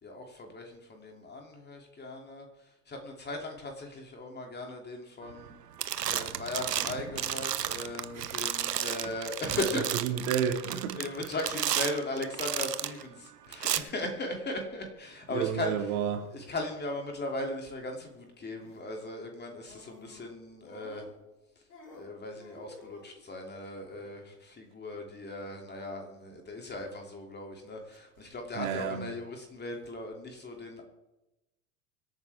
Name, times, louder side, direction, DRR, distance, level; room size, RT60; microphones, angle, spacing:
voice 1, 0.0-2.5 2.9-5.5 6.1-9.8 11.0-15.7 16.3-21.0 21.9-30.8, left 2 dB, 20° left, 2.8 m, -38 dB
sound 1, 5.3-5.5 5.8-13.0 13.5-13.8, right 10 dB, 80° right, 1.0 m, -33 dB
voice 2, 9.5-11.0 15.3-16.3 28.5-29.1, right 8 dB, 60° right, 2.3 m, -31 dB
sound 2, 10.6-11.1 12.0-12.4 13.6-14.3 14.6-14.7 15.4-16.6 17.8-18.2 18.6-18.8 19.6-20.3 20.7-21.4 21.7-23.2 23.8-24.2, left 2 dB, 70° left, 4.0 m, -55 dB
25.0 x 9.1 x 3.6 m
figure-of-eight pair, 80°, 48 cm